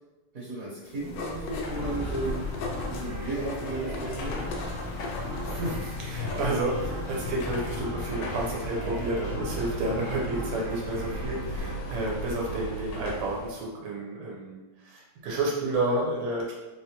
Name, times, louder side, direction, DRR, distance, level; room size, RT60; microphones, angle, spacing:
voice 1, 0.3-2.4 2.9-4.4 10.4-10.5, right 2 dB, 55° right, -7 dB, 1.0 m, -34 dB
sound 1, 0.8-7.8, left 3 dB, 90° left, 1.5 m, -41 dB
Car passing by / Traffic noise roadway noise / Engine, 1.0-13.6, left 1 dB, 70° left, 1.1 m, -36 dB
sound 2, 1.7-12.9, equal, 45° left, 0.3 m, -39 dB
voice 2, 5.5-16.5, right 2 dB, 85° right, -3 dB, 1.6 m, -31 dB
4.2 x 2.2 x 2.8 m, 1.1 s
omnidirectional pair, 2.4 m